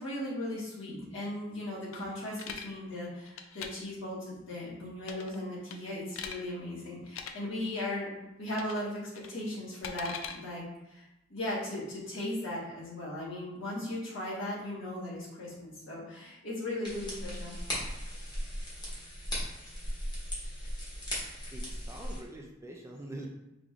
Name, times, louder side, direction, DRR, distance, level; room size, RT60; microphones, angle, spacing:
voice 1, 0.0-8.1 8.4-11.0 11.3-17.6, left 1 dB, 65° left, -6 dB, 1.5 m, -37 dB
sound 1, 1.9-2.7 3.3-3.7 5.0-5.4 5.7-6.4 7.1-7.3 8.5-8.9 9.2-10.4, left 7 dB, 85° left, 0.4 m, -41 dB
sound 2, 16.8-22.2, equal, 20° left, 1.1 m, -37 dB
voice 2, 21.5-23.3, right 1 dB, 15° right, 0 dB, 0.4 m, -44 dB
5.1 x 3.0 x 2.5 m, 0.94 s
head